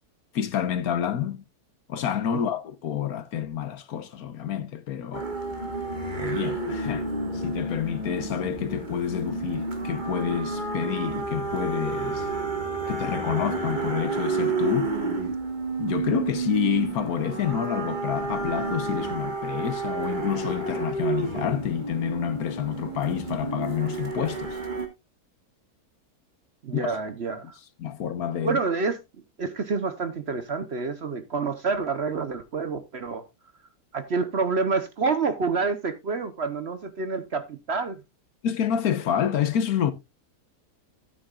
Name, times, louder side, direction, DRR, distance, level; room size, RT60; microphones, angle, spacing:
voice 1, 0.3-1.4 1.9-5.8 6.2-7.1 7.3-12.3 12.9-14.9 15.8-24.6 26.7-27.0 27.8-28.6 38.4-39.9, left 9 dB, 70° left, 1.3 m, -28 dB
sound 1, 5.1-24.9, right 3 dB, 30° right, 1.7 m, -30 dB
voice 2, 26.6-27.6 28.4-29.0 29.4-33.2 33.9-38.0, right 4 dB, 50° right, 1.0 m, -28 dB
13.5 x 8.9 x 2.4 m
omnidirectional pair, 1.7 m